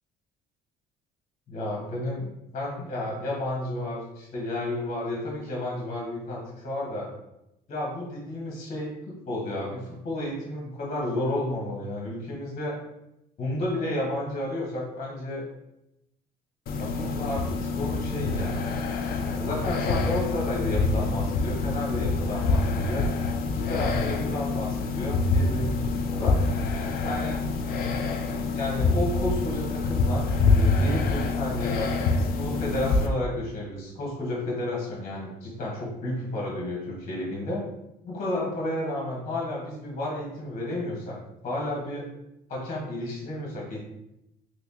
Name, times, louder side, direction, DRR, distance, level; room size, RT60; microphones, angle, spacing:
voice 1, 1.5-7.1 7.7-12.8 13.4-15.4 16.8-18.8 19.3-23.1 23.4-26.4 27.0-27.4 28.5-37.6 38.0-41.2 41.4-42.0 42.5-43.8, left 1 dB, 40° left, -3 dB, 1.2 m, -32 dB
sound 1, 16.7-33.1, left 3 dB, 60° left, 0.5 m, -26 dB
3.3 x 3.0 x 2.9 m, 0.87 s
cardioid pair, 110°, 17 cm